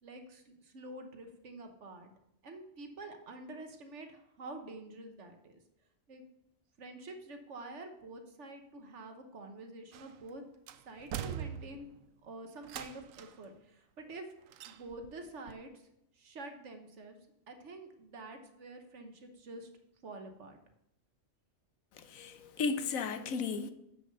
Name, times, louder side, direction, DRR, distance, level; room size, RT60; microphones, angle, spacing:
voice 1, 0.0-2.1 2.4-5.6 6.1-6.2 6.8-10.4 10.9-11.9 12.2-14.3 14.6-15.7 16.2-17.2 17.5-19.7 20.0-20.6, right 2 dB, 60° right, 1.4 m, -47 dB
sound 1, 9.9-10.3 10.7-12.0 12.6-13.4 14.5-15.2 15.5-15.6, right 9 dB, 80° right, 1.0 m, -42 dB
voice 2, 22.0-23.7, left 5 dB, 85° left, 1.2 m, -35 dB
7.7 x 6.5 x 5.4 m
omnidirectional pair, 1.4 m